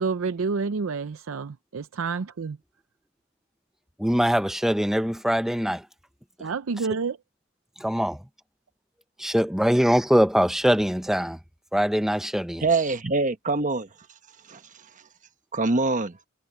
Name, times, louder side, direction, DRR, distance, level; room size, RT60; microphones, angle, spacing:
voice 1, 0.0-2.6 6.4-7.2, right 4 dB, 90° right, 0.6 m, -29 dB
voice 2, 4.0-5.8 7.8-8.2 9.2-11.4 11.7-12.6, equal, ahead, 0.7 m, -22 dB
voice 3, 12.6-13.9 14.5-14.6 15.5-16.2, right 3 dB, 40° right, 1.2 m, -24 dB
head